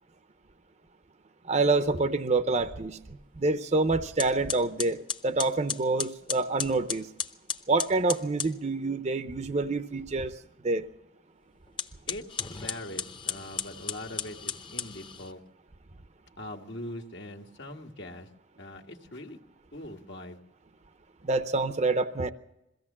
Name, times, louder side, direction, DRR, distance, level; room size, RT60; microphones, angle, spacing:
voice 1, 1.4-3.0 3.4-7.1 7.7-10.3 10.6-10.9 21.2-22.3, right 3 dB, 35° right, 10 dB, 0.7 m, -27 dB
sound 1, 3.7-3.8 4.2-8.6 11.7-15.3, left 6 dB, 25° left, 0.9 m, -35 dB
voice 2, 12.1-15.4 16.4-18.3 18.6-19.4 19.7-20.4, left 1 dB, 70° left, 3 dB, 1.8 m, -42 dB
22.5 x 16.0 x 7.3 m, 0.96 s
head